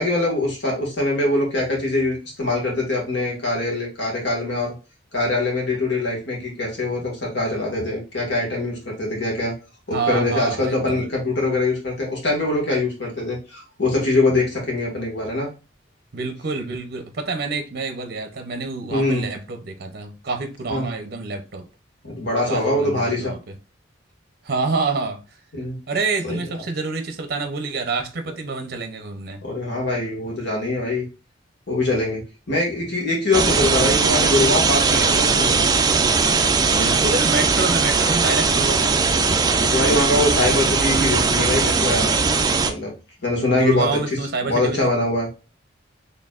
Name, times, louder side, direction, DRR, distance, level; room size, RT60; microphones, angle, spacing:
voice 1, 0.0-4.8 5.1-9.5 9.9-15.5 18.9-19.3 20.7-20.9 22.0-23.4 25.5-25.8 26.2-26.4 29.4-31.1 31.7-35.7 39.6-42.2 42.6-42.9 43.2-44.0 44.4-45.3, left 2 dB, 65° left, 1.7 m, -23 dB
voice 2, 9.9-11.0 16.1-21.7 22.4-23.5 24.4-25.2 25.9-29.5 36.6-39.4 43.4-44.9, right 3 dB, 55° right, 0.6 m, -27 dB
sound 1, 33.3-42.7, right 4 dB, 20° right, 0.4 m, -19 dB
4.4 x 3.2 x 2.4 m
head